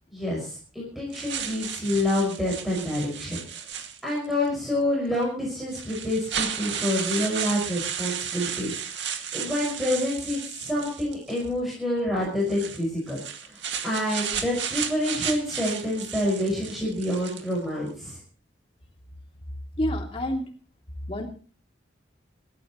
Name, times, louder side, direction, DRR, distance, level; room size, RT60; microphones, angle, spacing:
voice 1, 0.1-18.2, left 1 dB, ahead, -5 dB, 5.8 m, -28 dB
sound 1, 1.1-4.3 5.1-5.2 5.7-11.5 12.4-17.6, right 8 dB, 65° right, 2.2 m, -33 dB
voice 2, 19.8-20.5 21.1-21.3, equal, 30° left, 1 dB, 2.9 m, -28 dB
27.0 x 13.0 x 3.1 m, 0.37 s
head